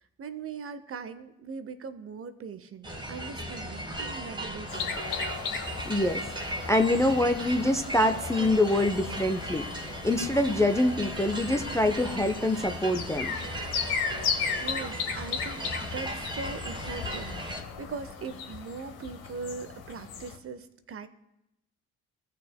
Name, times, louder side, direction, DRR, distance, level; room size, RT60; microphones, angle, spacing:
voice 1, 0.2-5.0 14.6-21.1, right 5 dB, 30° right, 12 dB, 0.7 m, -40 dB
sound 1, 2.8-17.6, right 1 dB, 10° right, 1.5 m, -37 dB
sound 2, 4.7-20.4, left 6 dB, 60° left, 1.2 m, -36 dB
voice 2, 5.9-13.3, left 1 dB, 5° left, 6 dB, 0.5 m, -25 dB
16.5 x 6.5 x 2.2 m, 0.89 s
figure-of-eight pair, 45°, 43 cm